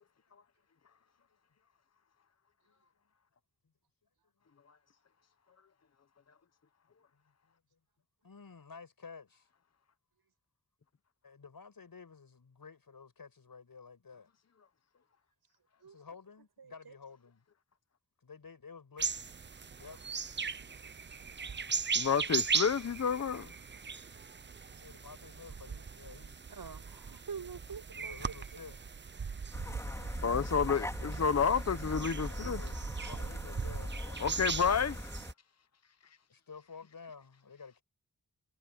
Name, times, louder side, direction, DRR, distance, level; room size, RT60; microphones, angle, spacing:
voice 1, 7.1-7.5 8.2-9.5 11.2-14.3 15.8-17.4 18.2-19.4 19.8-20.0 24.8-26.4 26.7-26.8 28.0-28.8 32.2-34.6 36.3-37.8, left 5 dB, 70° left, 7.4 m, -52 dB
voice 2, 16.6-16.9 26.5-28.2, right 6 dB, 80° right, 6.8 m, -45 dB
sound 1, 19.0-35.3, right 5 dB, 30° right, 0.6 m, -38 dB
voice 3, 21.9-23.5 30.2-32.6 34.2-35.1, left 6 dB, 45° left, 1.0 m, -30 dB
sound 2, 29.5-35.3, left 1 dB, 10° left, 4.5 m, -40 dB
wide cardioid pair, 95°, 37 cm